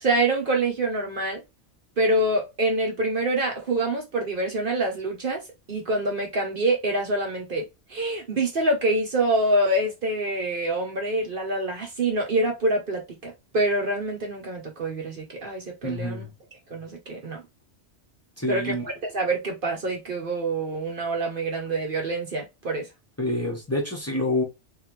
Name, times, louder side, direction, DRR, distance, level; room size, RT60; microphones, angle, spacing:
voice 1, 0.0-1.4 2.0-5.4 5.7-7.6 7.9-16.2 16.7-17.4 18.5-22.9, right 2 dB, 50° right, 1.0 m, -26 dB
voice 2, 15.8-16.3 18.4-18.8 23.2-24.4, left 1 dB, 15° left, 1.2 m, -27 dB
3.6 x 3.3 x 3.1 m
omnidirectional pair, 1.2 m